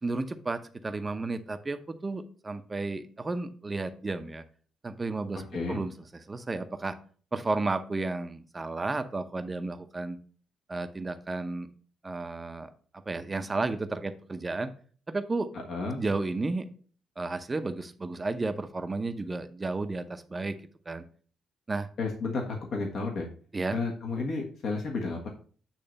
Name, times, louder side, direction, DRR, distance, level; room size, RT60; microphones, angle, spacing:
voice 1, 0.0-4.4 4.8-5.4 5.7-7.0 7.3-10.2 10.7-11.7 12.0-12.7 13.1-14.7 15.1-15.5 16.0-16.7 17.2-20.6 20.9-21.0 21.7-21.9 23.5-23.8, right 3 dB, 25° right, 9 dB, 0.7 m, -32 dB
voice 2, 15.7-16.0 22.0-23.3 23.7-25.3, left 3 dB, 60° left, 0 dB, 1.5 m, -32 dB
8.8 x 3.2 x 5.2 m, 0.43 s
cardioid pair, 90°, 0 cm